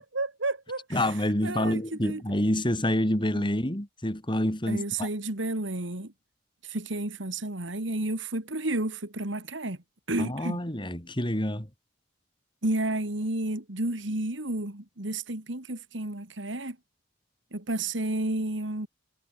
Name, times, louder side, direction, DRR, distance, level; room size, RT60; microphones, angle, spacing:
voice 1, 0.0-1.1 1.4-2.2 4.7-6.1 6.6-9.8 10.1-10.6 12.6-16.8 17.5-18.9, right 2 dB, 75° right, 2.8 m, -31 dB
voice 2, 0.9-5.1 10.2-11.7, left 1 dB, 25° left, 4.4 m, -27 dB
head